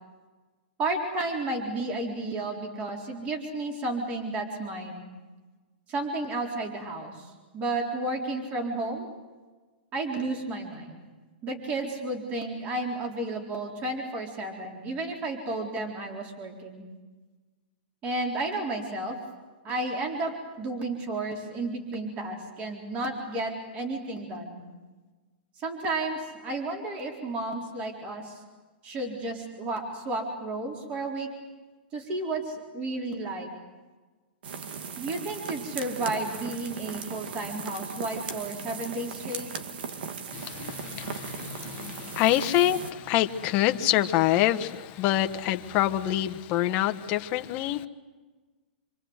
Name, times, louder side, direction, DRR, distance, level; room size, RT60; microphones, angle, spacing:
voice 1, 0.8-5.1 5.9-9.1 9.9-11.1 11.4-16.9 18.0-19.2 19.6-24.6 25.6-28.4 28.8-31.3 31.9-33.5 35.0-39.5, right 2 dB, 25° right, 2 dB, 4.1 m, -32 dB
sound 1, 34.4-42.9, right 6 dB, 65° right, 2.2 m, -38 dB
voice 2, 40.3-47.9, left 13 dB, 30° left, 8 dB, 1.3 m, -26 dB
27.5 x 25.0 x 8.1 m, 1.3 s
hypercardioid pair, 165°, 6 cm